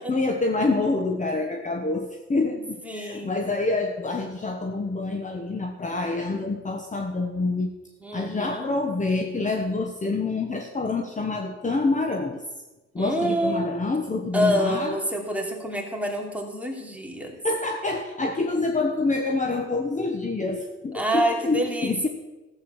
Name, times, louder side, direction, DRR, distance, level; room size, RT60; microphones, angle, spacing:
voice 1, 0.1-7.7 8.1-12.4 12.9-15.0 17.4-22.1, left 3 dB, 25° left, 4 dB, 1.2 m, -27 dB
voice 2, 2.5-3.4 8.0-8.7 13.0-13.7 14.3-17.4 20.9-22.1, equal, 5° right, 1 dB, 2.9 m, -27 dB
14.5 x 8.1 x 7.2 m, 1.1 s
cardioid pair, 90°, 30 cm